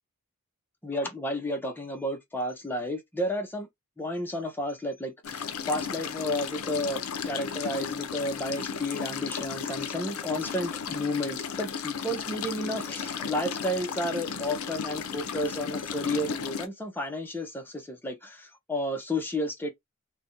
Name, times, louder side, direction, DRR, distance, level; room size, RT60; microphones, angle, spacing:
voice 1, 0.8-3.7 4.0-19.7, left 1 dB, 10° left, 0.5 m, -32 dB
sound 1, 5.2-16.7, left 6 dB, 70° left, 0.5 m, -35 dB
2.4 x 2.1 x 2.8 m
head